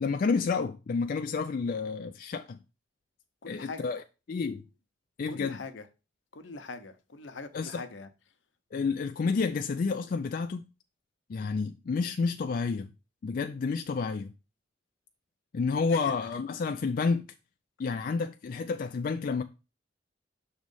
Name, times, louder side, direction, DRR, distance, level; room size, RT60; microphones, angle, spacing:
voice 1, 0.0-2.6 3.5-4.0 4.3-4.6 5.2-5.6 7.5-7.8 8.7-10.6 11.3-12.9 13.2-14.3 15.5-17.3 17.8-19.4, left 4 dB, 50° left, 0.4 m, -30 dB
voice 2, 3.4-3.9 5.3-5.9 6.3-8.1 15.9-16.2, left 3 dB, 80° left, 0.8 m, -42 dB
6.2 x 3.1 x 5.3 m
head